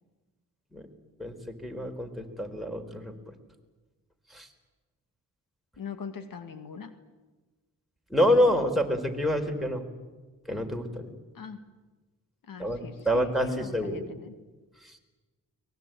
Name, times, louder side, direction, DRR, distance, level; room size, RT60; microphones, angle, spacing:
voice 1, 1.2-3.1 4.3-4.5 8.1-9.8 10.5-11.1 12.6-12.8 13.1-14.1, equal, ahead, 6 dB, 4.0 m, -27 dB
voice 2, 5.8-6.9 11.3-11.6 12.5-14.3, left 5 dB, 70° left, 9 dB, 2.0 m, -41 dB
23.0 x 20.5 x 9.1 m, 1.2 s
cardioid pair, 70°, 35 cm